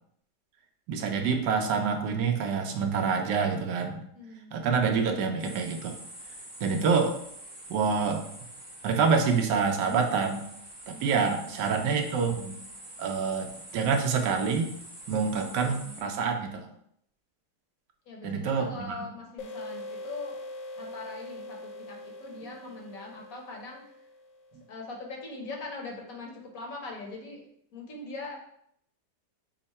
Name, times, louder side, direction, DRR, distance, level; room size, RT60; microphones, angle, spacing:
voice 1, 0.9-4.0 4.5-6.0 6.6-7.2 7.7-8.2 8.8-10.4 10.9-12.6 13.0-14.7 15.1-16.7 18.2-19.0, right 5 dB, 80° right, 4 dB, 1.3 m, -27 dB
voice 2, 4.1-4.7 11.4-11.6 18.1-20.4 20.8-24.1 24.7-27.4 27.7-28.4, left 3 dB, 60° left, 0 dB, 1.3 m, -41 dB
sound 1, 5.4-16.0, right 1 dB, 35° right, 0.8 m, -46 dB
sound 2, 19.4-24.7, left 2 dB, 85° left, 1.3 m, -42 dB
5.7 x 2.1 x 4.1 m, 0.70 s
omnidirectional pair, 1.8 m